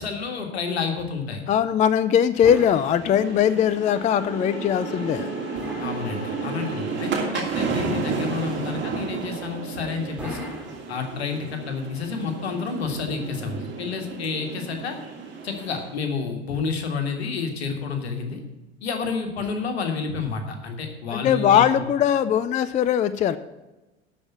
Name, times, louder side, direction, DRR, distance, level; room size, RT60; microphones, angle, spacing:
voice 1, 0.0-1.4 5.8-10.5 10.9-15.0 15.4-18.4 18.8-21.7, left 5 dB, 70° left, 4 dB, 1.9 m, -30 dB
voice 2, 1.5-5.3 21.1-23.4, left 9 dB, 25° left, 14 dB, 0.4 m, -20 dB
sound 1, 2.4-3.6 5.5-6.8 10.2-11.5, equal, 5° right, 2.5 m, -39 dB
sound 2, 2.4-15.9, right 4 dB, 35° right, 2.8 m, -32 dB
sound 3, 3.0-7.2, left 4 dB, 55° left, 1.5 m, -40 dB
12.5 x 5.0 x 8.5 m, 1.1 s
figure-of-eight pair, 70°, 33 cm